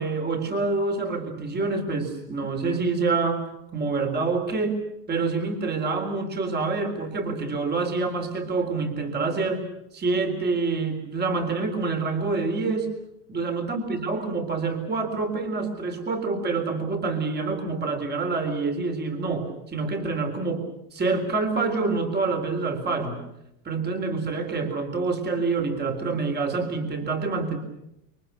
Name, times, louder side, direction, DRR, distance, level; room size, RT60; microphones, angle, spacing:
voice 1, 0.0-3.4 3.7-4.8 5.1-9.6 9.9-12.9 13.3-23.2 23.6-27.6, right 4 dB, 20° right, 5 dB, 3.9 m, -27 dB
28.0 x 23.5 x 6.8 m, 0.82 s
supercardioid pair, 125°, 45 cm